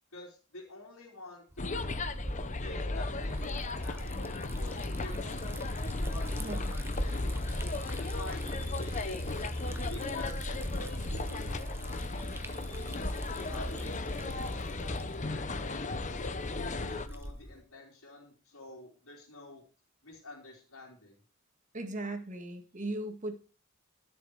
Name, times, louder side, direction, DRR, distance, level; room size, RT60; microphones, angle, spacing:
voice 1, 0.1-1.9 2.5-4.1 4.5-7.4 8.0-8.4 8.7-9.3 9.9-13.0 13.5-15.9 16.5-19.6 20.0-21.2, left 2 dB, 90° left, -5 dB, 3.7 m, -49 dB
Liquid, 1.5-17.6, equal, 10° right, 1.0 m, -42 dB
sound 1, 1.6-17.1, left 2 dB, 35° left, 0.9 m, -35 dB
voice 2, 21.7-23.3, right 1 dB, 35° right, 6 dB, 2.0 m, -37 dB
14.5 x 7.1 x 4.8 m, 0.36 s
head